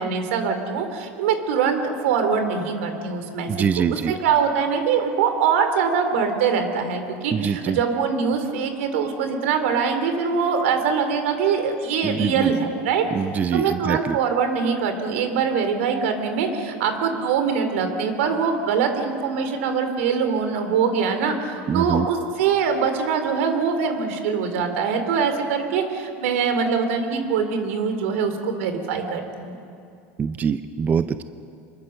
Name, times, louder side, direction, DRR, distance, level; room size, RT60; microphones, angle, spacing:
voice 1, 0.0-3.5 3.8-13.0 13.5-29.5, right 6 dB, 85° right, 7 dB, 3.0 m, -23 dB
voice 2, 3.5-4.1 7.3-7.8 12.0-12.5 13.1-14.2 21.7-22.1 30.2-31.2, right 7 dB, 25° right, 11 dB, 0.7 m, -24 dB
25.5 x 21.5 x 6.5 m, 2.4 s
supercardioid pair, 135°, 7 cm